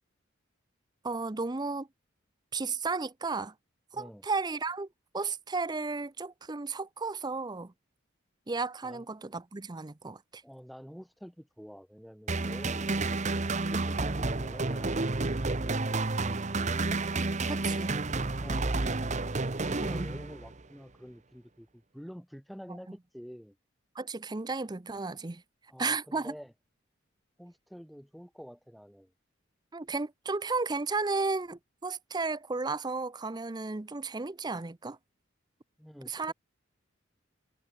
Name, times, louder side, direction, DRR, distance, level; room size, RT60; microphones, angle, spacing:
voice 1, 1.0-1.9 2.5-3.5 3.9-4.9 5.1-7.7 8.5-10.4 17.5-18.0 19.8-20.1 22.7-22.8 24.0-25.4 25.8-26.3 29.7-35.0 36.1-36.3, right 3 dB, 20° right, 0.6 m, -33 dB
voice 2, 10.4-13.1 13.5-15.3 17.5-18.8 19.5-23.6 25.7-26.5 27.4-29.1 35.8-36.3, equal, ahead, 1.4 m, -48 dB
sound 1, 12.3-20.6, right 3 dB, 35° right, 1.0 m, -30 dB
head